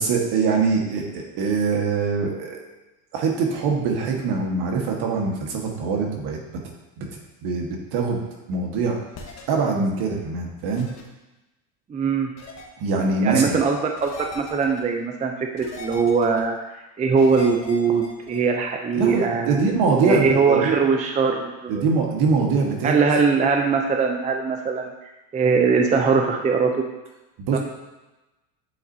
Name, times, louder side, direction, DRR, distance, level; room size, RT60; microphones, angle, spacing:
voice 1, 0.0-2.6 3.1-6.4 7.0-7.1 7.4-8.2 8.5-9.0 9.5-10.9 12.8-13.6 18.9-20.7 21.7-22.9 27.4-27.6, right 4 dB, 60° right, 1 dB, 1.5 m, -23 dB
sound 1, 9.1-9.4 10.8-11.0 12.4-12.6 14.0-14.8 15.6-16.4 17.2-18.4, left 3 dB, 40° left, 1.2 m, -39 dB
voice 2, 11.9-12.3 13.2-16.6 17.0-19.6 20.0-21.8 22.8-24.9 25.3-26.7 27.5-27.6, right 5 dB, 20° right, 3 dB, 0.5 m, -21 dB
8.6 x 4.1 x 2.7 m, 1.0 s
supercardioid pair, 105°, 43 cm